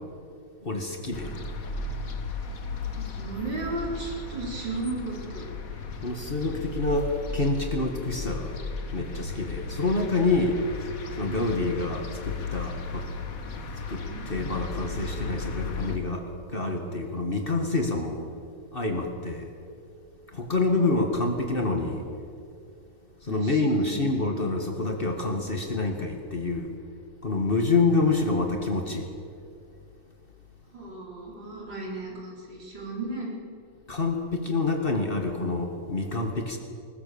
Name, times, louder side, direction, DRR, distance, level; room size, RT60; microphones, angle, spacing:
voice 1, 0.6-1.3 6.0-8.5 8.9-10.6 11.1-13.1 13.9-16.2 16.5-18.3 18.7-19.5 20.3-22.0 23.2-26.7 27.2-29.1 33.9-36.6, left 3 dB, 40° left, 3 dB, 0.7 m, -27 dB
sound 1, 1.1-16.0, left 4 dB, 70° left, 0.8 m, -35 dB
voice 2, 3.0-5.5 14.0-14.2 23.3-24.2 30.7-33.3, right 2 dB, 30° right, -2 dB, 4.7 m, -35 dB
20.5 x 20.0 x 7.0 m, 2.5 s
omnidirectional pair, 3.9 m